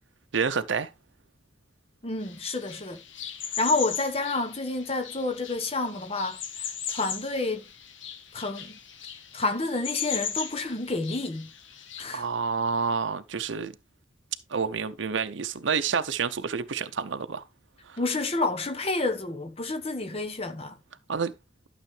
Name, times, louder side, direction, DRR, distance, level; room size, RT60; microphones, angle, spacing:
voice 1, 0.3-0.9 12.1-13.7 14.5-17.4 17.9-18.0 21.1-21.3, right 5 dB, 80° right, 0.7 m, -28 dB
voice 2, 2.0-3.0 3.6-7.7 8.3-8.8 9.3-11.5 12.0-12.2 18.0-20.8, left 3 dB, 30° left, 1.2 m, -29 dB
sound 1, 2.2-12.0, left 8 dB, 90° left, 1.4 m, -38 dB
12.0 x 6.7 x 3.3 m
head